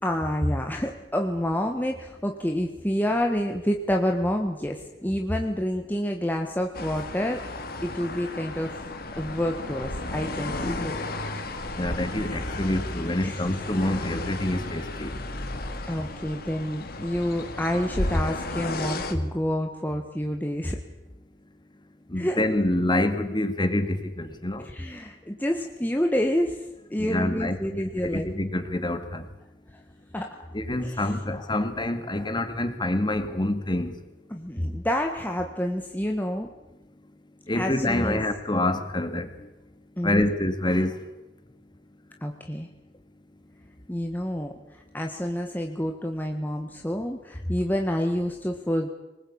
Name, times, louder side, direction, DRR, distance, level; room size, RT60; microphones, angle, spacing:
voice 1, 0.0-7.4 7.8-8.7 9.2-11.0 13.2-13.4 15.9-20.8 22.2-22.4 24.6-26.6 26.9-28.3 30.1-30.4 30.8-31.1 34.3-36.5 37.5-38.2 40.0-40.3 42.2-42.7 43.9-44.5 44.9-48.9, equal, 10° left, 3 dB, 1.5 m, -28 dB
sound 1, 6.7-19.1, left 2 dB, 55° left, 2.5 m, -34 dB
voice 2, 11.8-15.1 22.1-24.6 27.0-27.8 28.1-29.2 30.5-33.9 37.5-39.3 40.0-41.0, left 1 dB, 25° left, 9 dB, 2.1 m, -26 dB
24.0 x 20.0 x 8.7 m, 1.0 s
head